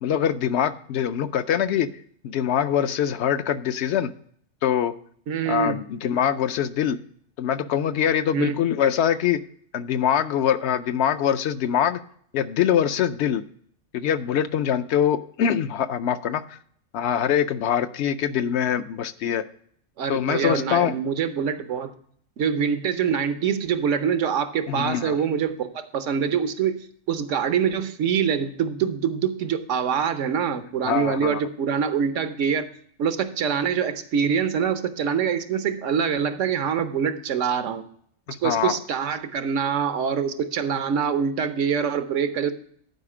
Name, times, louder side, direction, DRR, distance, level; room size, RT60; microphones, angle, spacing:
voice 1, 0.0-1.9 2.2-4.1 4.6-4.9 5.5-7.0 7.4-9.4 9.7-12.0 12.3-13.4 13.9-16.4 16.9-19.4 20.1-20.9 24.7-25.1 30.8-31.4 38.3-38.8, left 9 dB, 70° left, 11 dB, 0.8 m, -23 dB
voice 2, 5.3-5.8 8.3-8.6 20.0-21.9 22.4-32.7 33.0-37.9 38.4-42.5, right 7 dB, 85° right, 11 dB, 1.1 m, -25 dB
10.5 x 5.0 x 4.8 m, 0.62 s
omnidirectional pair, 1.2 m